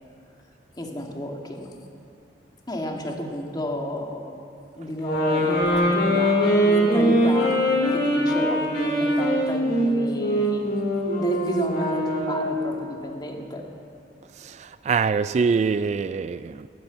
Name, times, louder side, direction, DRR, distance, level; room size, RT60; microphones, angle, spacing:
voice 1, 0.8-1.7 2.7-4.4 4.8-7.6 7.9-10.6 11.1-13.6, left 1 dB, 25° left, 1 dB, 1.9 m, -32 dB
sound 1, 5.0-12.6, equal, 80° left, 4.9 m, -22 dB
voice 2, 14.4-16.7, right 5 dB, 40° right, 14 dB, 0.3 m, -24 dB
18.0 x 10.0 x 8.0 m, 2.5 s
head